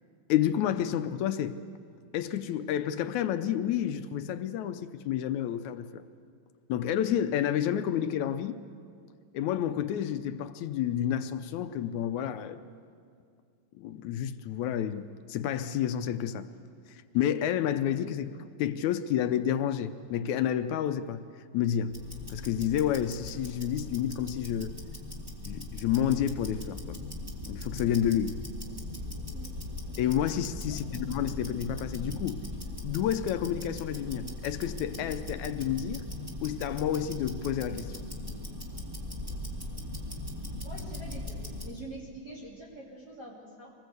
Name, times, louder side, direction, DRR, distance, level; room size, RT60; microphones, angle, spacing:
voice 1, 0.3-1.6 2.1-6.0 6.7-8.6 9.3-12.6 13.8-16.5 16.9-18.3 18.6-21.2 21.5-22.0 22.3-24.7 25.5-27.0 27.5-28.4 30.0-32.4 32.8-36.0 36.4-37.9, left 10 dB, 75° left, 10 dB, 1.9 m, -30 dB
Tick-tock, 21.9-41.8, left 1 dB, 10° right, 1.7 m, -39 dB
voice 2, 30.7-31.0 40.6-43.7, right 2 dB, 30° right, -5 dB, 3.4 m, -46 dB
24.5 x 19.5 x 8.1 m, 2.2 s
omnidirectional pair, 3.7 m